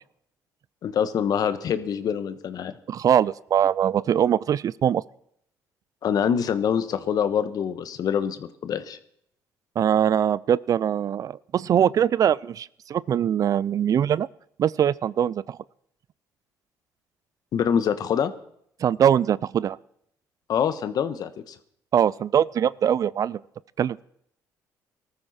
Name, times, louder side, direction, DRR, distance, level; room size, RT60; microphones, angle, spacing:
voice 1, 0.8-2.7 6.0-9.0 17.5-18.3 20.5-21.5, left 8 dB, 60° left, 11 dB, 1.3 m, -25 dB
voice 2, 2.9-5.0 9.8-14.3 14.6-15.6 18.8-19.8 21.9-23.4 23.8-24.0, right 9 dB, 50° right, 21 dB, 0.5 m, -22 dB
19.0 x 13.5 x 4.4 m, 0.69 s
supercardioid pair, 80°, 7 cm